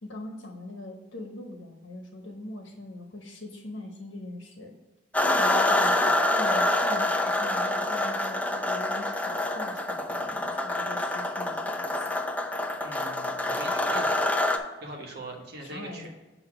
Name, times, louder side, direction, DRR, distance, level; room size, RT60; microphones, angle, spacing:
voice 1, 0.0-4.7 5.2-12.2 15.6-16.1, left 2 dB, 85° left, 1 dB, 1.0 m, -41 dB
sound 1, 5.1-14.6, left 1 dB, 10° left, 0.5 m, -26 dB
voice 2, 12.8-14.3 14.8-16.1, right 2 dB, 60° right, -1 dB, 1.1 m, -41 dB
7.8 x 2.8 x 6.0 m, 1.1 s
head